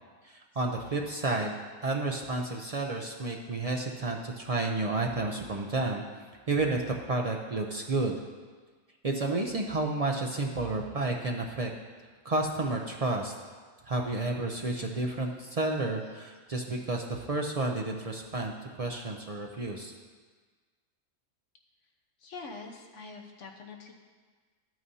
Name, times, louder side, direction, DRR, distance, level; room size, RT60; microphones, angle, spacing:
voice 1, 0.2-1.6 1.8-6.0 6.5-8.1 9.0-11.7 12.2-13.3 13.9-18.5 18.8-19.9, right 2 dB, 55° right, 0 dB, 0.4 m, -31 dB
voice 2, 22.2-23.9, left 4 dB, 60° left, 1 dB, 1.3 m, -44 dB
12.5 x 8.9 x 2.7 m, 1.5 s
omnidirectional pair, 1.5 m